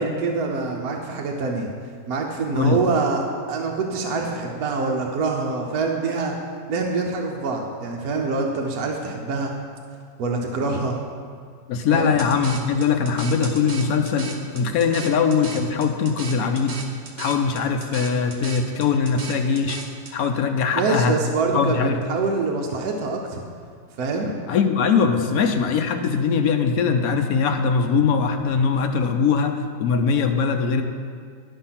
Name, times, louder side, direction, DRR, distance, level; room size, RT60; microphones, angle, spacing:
voice 1, 0.0-1.7 2.1-6.4 6.7-9.5 10.2-11.0 11.9-12.1 20.7-23.4 24.0-24.4, right 3 dB, 60° right, 1 dB, 1.2 m, -25 dB
voice 2, 11.7-14.3 14.5-16.8 17.2-19.8 20.1-21.2 21.5-22.0 24.5-30.8, left 5 dB, 65° left, 5 dB, 1.0 m, -21 dB
sound 1, 12.2-20.1, right 4 dB, 45° right, 0.6 m, -37 dB
11.5 x 5.5 x 5.7 m, 2.1 s
omnidirectional pair, 1.9 m